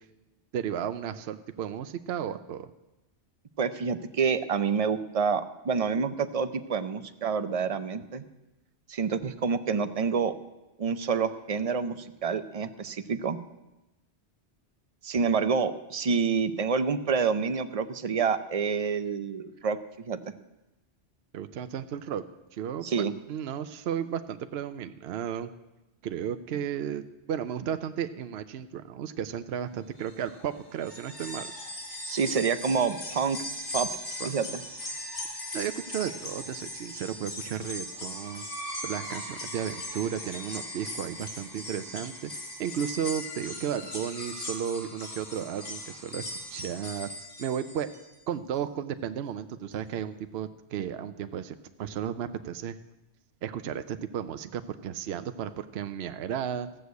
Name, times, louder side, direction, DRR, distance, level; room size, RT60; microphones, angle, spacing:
voice 1, 0.5-2.7 21.3-22.2 22.5-22.9 23.3-25.5 26.0-31.5 34.2-34.3 35.5-38.5 38.8-46.2 46.5-47.1 47.4-47.9 48.3-52.8 53.4-56.7, right 9 dB, 65° right, 10 dB, 0.8 m, -34 dB
voice 2, 3.6-8.2 8.9-10.3 10.8-13.4 15.0-20.2 22.8-23.1 32.0-33.4 33.7-33.9 34.2-34.5, right 5 dB, 40° right, 11 dB, 0.6 m, -28 dB
sound 1, 29.8-47.1, equal, 70° left, 3.3 m, -47 dB
sound 2, 30.8-48.1 48.5-48.6 49.7-49.8, left 1 dB, 45° left, 2.1 m, -39 dB
15.5 x 6.4 x 8.2 m, 1.0 s
omnidirectional pair, 1.2 m